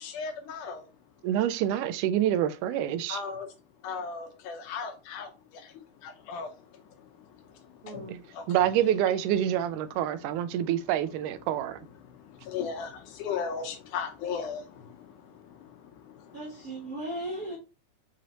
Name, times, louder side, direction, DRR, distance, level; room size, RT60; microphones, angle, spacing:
voice 1, 0.0-0.8 3.1-3.5 3.8-5.3 6.3-6.5 7.9-8.0 12.5-12.9 13.2-14.6, left 6 dB, 85° left, 2.4 m, -34 dB
voice 2, 1.2-3.2 8.1-8.2 8.5-11.8, right 11 dB, 90° right, 2.0 m, -27 dB
voice 3, 7.8-8.2 16.3-17.6, right 1 dB, 60° right, 0.8 m, -37 dB
6.0 x 3.0 x 2.9 m
omnidirectional pair, 3.5 m